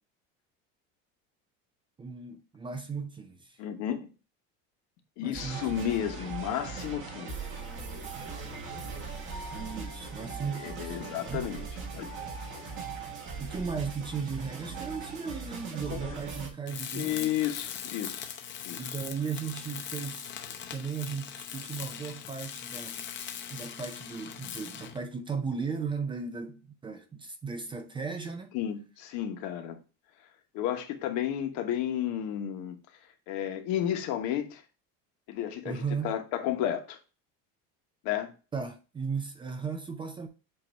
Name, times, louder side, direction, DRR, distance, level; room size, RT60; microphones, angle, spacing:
voice 1, 2.0-3.6 5.2-5.8 9.5-11.5 13.4-17.3 18.8-20.3 20.7-23.1 23.5-28.5 35.6-36.1 38.5-40.3, right 5 dB, 15° right, 0.4 m, -36 dB
voice 2, 3.6-4.1 5.2-7.4 10.5-11.7 11.9-12.1 15.9-16.2 16.9-18.3 18.6-19.0 28.5-29.8 30.5-32.7 33.3-34.6 35.3-37.0 38.0-38.3, left 11 dB, 65° left, 1.2 m, -32 dB
sound 1, 5.3-16.5, right 4 dB, 40° right, 1.5 m, -39 dB
Tools, 16.7-25.0, left 9 dB, 35° left, 0.7 m, -40 dB
7.7 x 2.7 x 4.5 m
cardioid pair, 150°, 31 cm